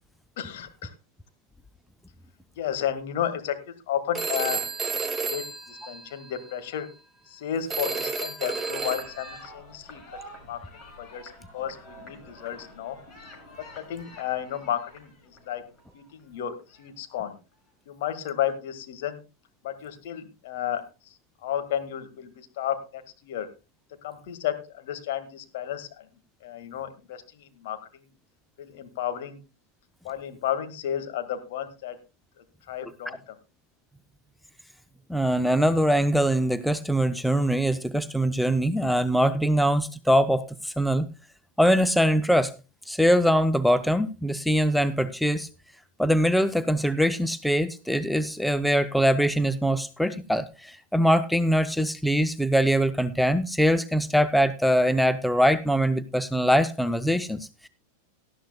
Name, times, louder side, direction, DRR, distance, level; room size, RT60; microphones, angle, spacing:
voice 1, 0.4-0.9 2.6-3.6 3.9-4.6 4.9-6.9 7.3-10.0 10.5-10.6 11.0-13.0 13.8-15.1 15.4-15.6 15.9-17.3 17.9-19.2 19.6-20.8 21.4-23.5 24.0-25.9 26.4-27.8 28.6-29.4 30.0-32.0 32.7-33.3, left 10 dB, 50° left, 8 dB, 1.7 m, -32 dB
Telephone, 4.1-6.5 7.7-9.4, right 4 dB, 15° right, 1.2 m, -31 dB
sound 1, 8.7-17.5, left 1 dB, 30° left, 6.4 m, -48 dB
voice 2, 32.8-33.2 35.1-41.1 41.6-42.5 42.9-45.5 46.0-57.7, equal, ahead, 12 dB, 0.5 m, -23 dB
17.5 x 12.5 x 2.2 m, 0.29 s
figure-of-eight pair, 90°, 0 cm